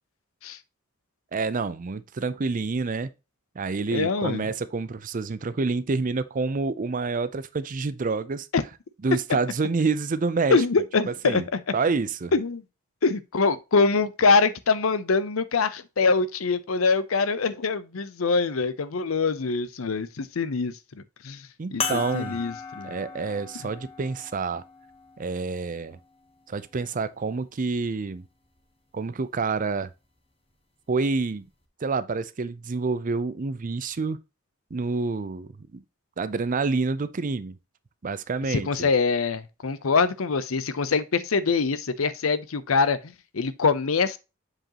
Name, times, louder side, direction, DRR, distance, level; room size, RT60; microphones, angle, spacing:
voice 1, 1.3-3.1 3.6-8.5 9.0-10.6 11.2-11.4 11.7-12.3 21.6-22.4 22.8-24.6 25.2-26.0 26.5-28.3 28.9-29.9 30.9-31.5 31.8-34.2 34.7-35.8 36.2-37.6 38.0-38.9, right 4 dB, 40° right, 0.5 m, -28 dB
voice 2, 3.9-4.4 8.5-8.6 10.5-11.6 12.3-12.6 13.0-21.4 21.7-22.9 38.5-44.2, left 4 dB, 90° left, 0.7 m, -24 dB
sound 1, 21.8-26.6 27.4-27.5 29.6-29.7, left 5 dB, 30° left, 1.0 m, -37 dB
7.6 x 5.0 x 2.9 m
head